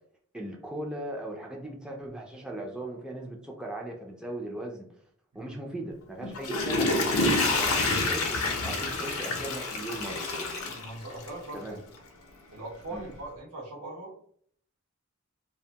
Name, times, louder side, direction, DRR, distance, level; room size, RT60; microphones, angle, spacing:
voice 1, 0.3-4.8 5.3-8.3 8.6-10.2 11.5-11.8 12.9-13.1, right 1 dB, 5° right, -1 dB, 0.3 m, -38 dB
Water / Toilet flush, 6.2-11.5 12.0-12.1, left 2 dB, 65° left, 0.5 m, -28 dB
voice 2, 10.6-11.8 12.5-14.1, right 2 dB, 80° right, -2 dB, 0.9 m, -41 dB
2.5 x 2.2 x 2.7 m, 0.62 s
head